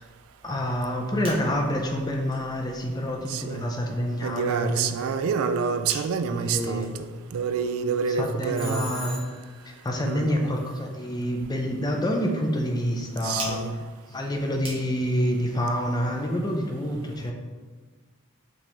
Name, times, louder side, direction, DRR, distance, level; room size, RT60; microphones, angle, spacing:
voice 1, 0.4-5.3 6.3-6.9 8.2-9.2 9.8-13.6 14.1-17.3, equal, 20° left, 1 dB, 0.5 m, -27 dB
sound 1, 0.8-15.3, right 2 dB, 25° right, 1.0 m, -47 dB
voice 2, 3.3-3.7 4.2-6.9 7.3-8.9 10.0-10.6 13.2-13.8, right 6 dB, 85° right, 9 dB, 0.3 m, -27 dB
Telephone, 8.6-9.6, left 1 dB, 5° left, 1.1 m, -38 dB
5.1 x 3.4 x 2.9 m, 1.4 s
head